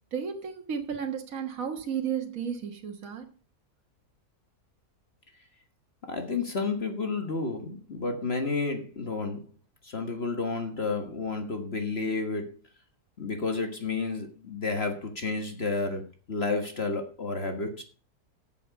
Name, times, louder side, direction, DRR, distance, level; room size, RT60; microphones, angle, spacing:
voice 1, 0.1-3.3, right 7 dB, 60° right, 1.9 m, -33 dB
voice 2, 6.1-9.4 9.8-12.6 13.2-17.8, left 3 dB, 40° left, 1.7 m, -31 dB
13.0 x 7.5 x 5.3 m
omnidirectional pair, 1.6 m